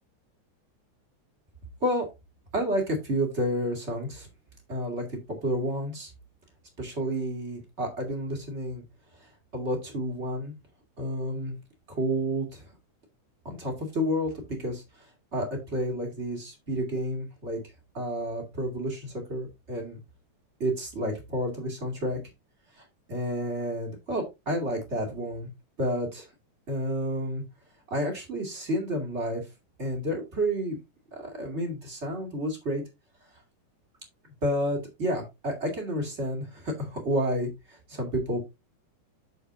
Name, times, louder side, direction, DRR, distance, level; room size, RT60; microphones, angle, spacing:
voice 1, 2.5-4.3 4.7-6.1 6.8-8.8 9.5-10.5 11.0-11.6 11.9-12.6 13.4-14.8 15.3-17.6 17.9-20.0 20.6-22.2 22.8-25.5 25.8-26.3 26.7-27.4 27.9-29.4 29.8-30.8 31.1-32.8 34.4-38.4, equal, 25° right, 1 dB, 2.3 m, -30 dB
8.3 x 7.1 x 2.6 m, 0.23 s
omnidirectional pair, 3.6 m